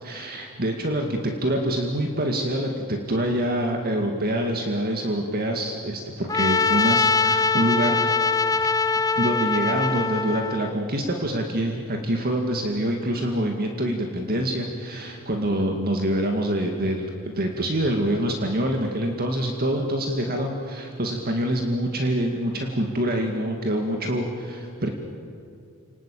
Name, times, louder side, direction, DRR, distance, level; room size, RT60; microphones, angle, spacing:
voice 1, 0.0-8.1 8.9-17.0 17.3-24.9, right 1 dB, 45° right, 3 dB, 2.2 m, -26 dB
Trumpet, 6.3-10.7, left 4 dB, 15° left, 0.6 m, -22 dB
30.0 x 19.5 x 8.6 m, 2.5 s
head